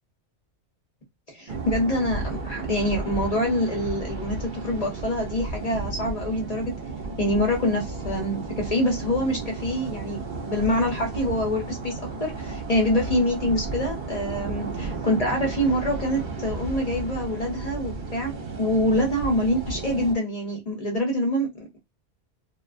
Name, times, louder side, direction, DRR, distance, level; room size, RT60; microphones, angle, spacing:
voice 1, 1.3-6.7 7.2-21.5, left 1 dB, 40° left, 0.8 m, -25 dB
sound 1, 1.5-20.1, right 3 dB, 55° right, 0.6 m, -33 dB
2.3 x 2.3 x 2.3 m
omnidirectional pair, 1.2 m